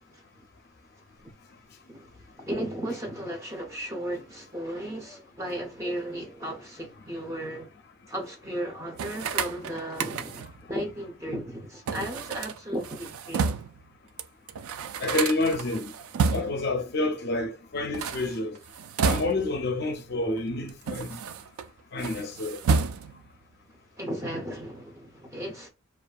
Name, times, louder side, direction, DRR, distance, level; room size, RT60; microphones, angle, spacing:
voice 1, 1.9-7.7 8.1-13.6 15.1-15.2 22.2-22.3 24.0-25.7, right 1 dB, 15° right, 0.6 m, -35 dB
sound 1, 9.0-10.6 11.9-13.8 14.2-14.3 14.5-16.7 17.8-19.6 20.4-21.7 22.0-23.3, right 5 dB, 80° right, 0.3 m, -30 dB
voice 2, 15.0-15.9 16.3-18.6 19.0-21.2 21.9-22.6, left 2 dB, 50° left, 0.5 m, -28 dB
2.6 x 2.3 x 2.3 m
head